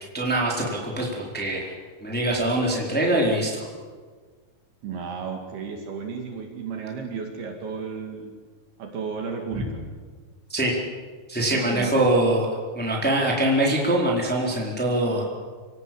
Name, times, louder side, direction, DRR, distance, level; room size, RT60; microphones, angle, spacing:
voice 1, 0.1-1.7 2.0-3.6 9.6-9.7 10.5-10.8 11.3-12.5 12.7-15.3, right 1 dB, ahead, -3 dB, 3.6 m, -23 dB
voice 2, 4.8-8.3 8.8-9.8 11.5-11.9, right 5 dB, 60° right, 2 dB, 3.9 m, -33 dB
27.0 x 17.5 x 7.9 m, 1.5 s
omnidirectional pair, 5.4 m